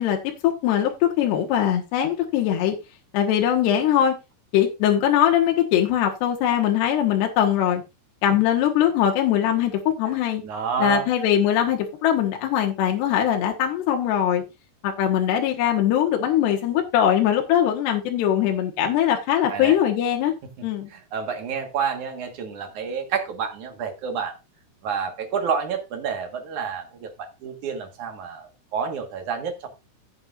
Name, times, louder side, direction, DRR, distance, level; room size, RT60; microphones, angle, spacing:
voice 1, 0.0-2.8 3.1-4.1 4.5-7.8 8.2-10.4 10.8-14.4 14.8-20.3 20.6-20.9, left 10 dB, 80° left, 3.3 m, -21 dB
voice 2, 10.4-11.1 19.5-19.8 20.9-24.3 24.8-29.7, right 6 dB, 55° right, 2.7 m, -29 dB
15.0 x 7.8 x 2.6 m
omnidirectional pair, 4.8 m